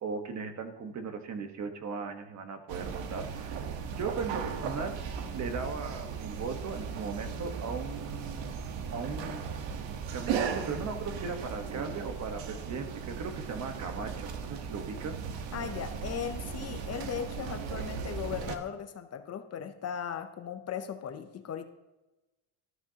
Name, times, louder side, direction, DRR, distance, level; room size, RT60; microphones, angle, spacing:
voice 1, 0.0-3.7 4.0-5.0 5.3-8.5 8.9-9.5 10.1-15.2, right 5 dB, 35° right, 6 dB, 1.2 m, -37 dB
sound 1, 2.7-18.6, right 6 dB, 70° right, 1.4 m, -37 dB
voice 2, 15.5-21.6, left 8 dB, 35° left, 8 dB, 0.6 m, -37 dB
18.5 x 13.0 x 2.9 m, 1.1 s
cardioid pair, 170°, 47 cm